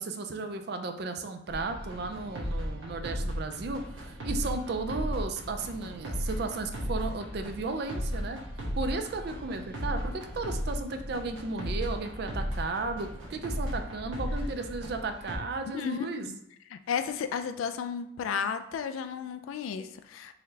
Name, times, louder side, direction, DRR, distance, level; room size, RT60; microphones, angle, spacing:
voice 1, 0.0-8.4 8.7-16.3, right 3 dB, 55° right, 7 dB, 0.4 m, -34 dB
sound 1, 1.5-15.4, equal, 75° right, 1.0 m, -35 dB
voice 2, 15.7-16.4 16.7-20.4, left 7 dB, 85° left, 9 dB, 0.3 m, -33 dB
3.9 x 3.1 x 2.7 m, 0.79 s
head